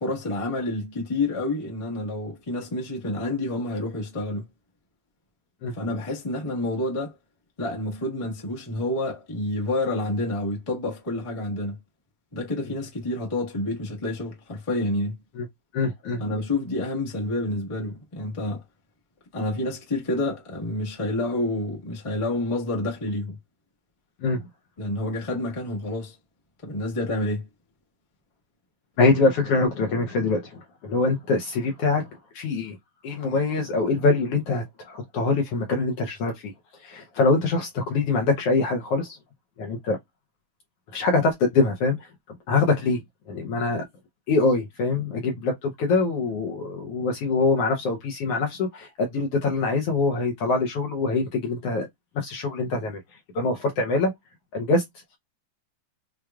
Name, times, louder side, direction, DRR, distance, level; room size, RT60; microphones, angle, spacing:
voice 1, 0.0-4.4 5.7-7.2 7.6-11.8 12.3-15.1 16.2-18.6 19.3-23.4 24.8-26.2 26.6-27.5, left 2 dB, 40° left, 0.4 m, -28 dB
voice 2, 15.7-16.2 24.2-24.4 29.0-32.1 32.3-32.8 33.0-36.5 36.8-39.2 39.6-40.0 40.9-42.1 42.5-43.0 43.3-43.8 44.3-51.9 52.1-53.0 53.3-54.1 54.5-54.8, left 3 dB, 70° left, 1.4 m, -24 dB
6.2 x 2.3 x 2.3 m
omnidirectional pair, 3.3 m